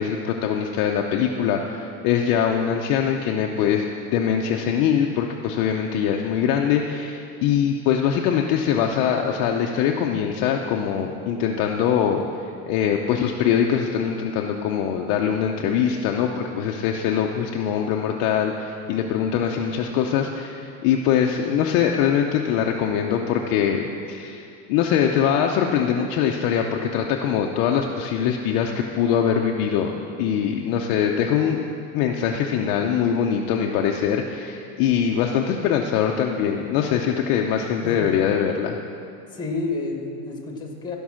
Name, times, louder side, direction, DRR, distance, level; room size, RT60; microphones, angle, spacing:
voice 1, 0.0-3.9 4.1-12.3 12.7-31.6 31.9-38.8, left 8 dB, 45° left, 1 dB, 0.7 m, -23 dB
voice 2, 37.8-38.2 39.3-41.0, left 3 dB, 10° left, 1 dB, 1.5 m, -30 dB
15.0 x 5.5 x 6.3 m, 2.6 s
supercardioid pair, 135°, 47 cm